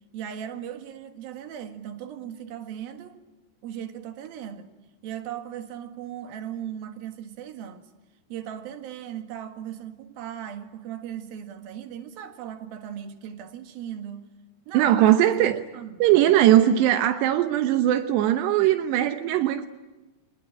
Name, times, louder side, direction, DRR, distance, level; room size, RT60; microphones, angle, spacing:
voice 1, 0.1-3.2 3.6-4.7 5.0-7.9 8.3-14.3 14.7-16.0, right 9 dB, 65° right, 3.4 m, -38 dB
voice 2, 14.7-15.6 16.0-19.7, right 12 dB, 85° right, 3.1 m, -20 dB
25.0 x 20.5 x 9.9 m
omnidirectional pair, 4.8 m